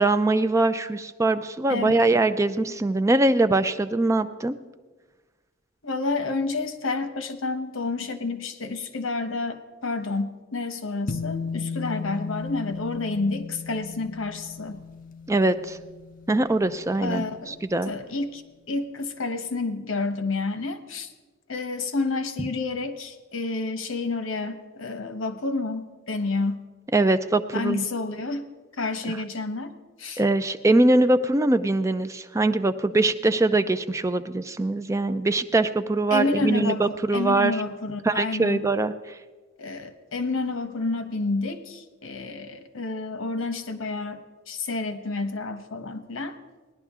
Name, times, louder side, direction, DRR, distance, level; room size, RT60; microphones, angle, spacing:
voice 1, 0.0-4.5 15.3-15.8 16.3-17.9 26.9-27.8 30.2-37.5 38.0-38.9, right 2 dB, 15° right, 10 dB, 0.4 m, -22 dB
voice 2, 5.8-14.8 17.0-17.6 17.9-18.4 18.7-21.1 21.5-26.6 27.5-28.4 28.8-29.7 30.0-30.2 36.1-36.8 37.1-38.6 39.6-44.2 44.5-46.4, left 3 dB, 80° left, 9 dB, 1.0 m, -29 dB
sound 1, 11.1-17.7, left 4 dB, 40° left, 0.5 m, -36 dB
18.5 x 11.0 x 3.6 m, 1.3 s
head